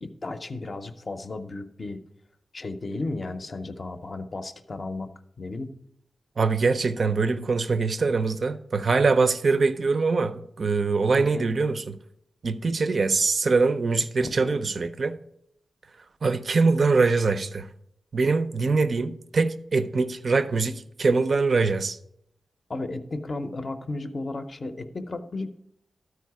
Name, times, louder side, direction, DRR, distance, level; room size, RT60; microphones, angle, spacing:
voice 1, 0.0-2.0 2.5-5.1 5.4-5.7 11.1-11.5 14.2-14.5 22.7-25.6, left 2 dB, 35° left, 0.6 m, -34 dB
voice 2, 6.4-11.9 12.4-15.2 16.2-17.7 18.1-22.0, right 4 dB, 45° right, 0.5 m, -23 dB
12.5 x 4.7 x 4.7 m
wide cardioid pair, 165°, 0 cm